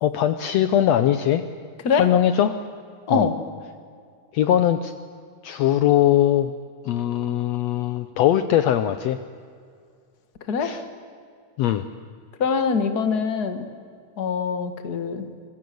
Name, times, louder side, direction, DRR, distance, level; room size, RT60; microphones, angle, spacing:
voice 1, 0.0-1.4 2.0-2.6 3.1-3.3 4.3-4.9 5.4-6.5 6.9-9.2 10.6-10.8 11.6-11.8, left 11 dB, 70° left, 11 dB, 1.8 m, -20 dB
voice 2, 12.4-13.7 14.2-15.3, left 5 dB, 40° left, 8 dB, 1.9 m, -23 dB
26.0 x 22.5 x 7.9 m, 2.2 s
omnidirectional pair, 3.4 m